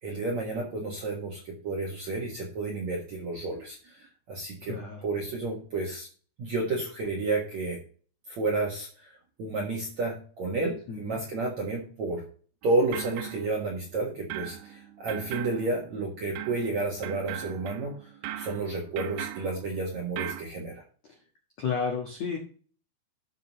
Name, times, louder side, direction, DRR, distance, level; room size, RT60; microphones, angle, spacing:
voice 1, 0.0-4.8 5.0-6.1 6.4-7.8 8.3-12.2 12.6-20.8, right 2 dB, 65° right, -2 dB, 1.8 m, -31 dB
voice 2, 4.6-5.1 10.9-11.2 21.1-21.2 21.6-22.4, left 5 dB, 80° left, 0 dB, 1.5 m, -32 dB
sound 1, 12.6-14.0 14.3-20.4, right 13 dB, 85° right, 3.2 m, -40 dB
12.5 x 6.9 x 3.1 m, 0.42 s
omnidirectional pair, 5.6 m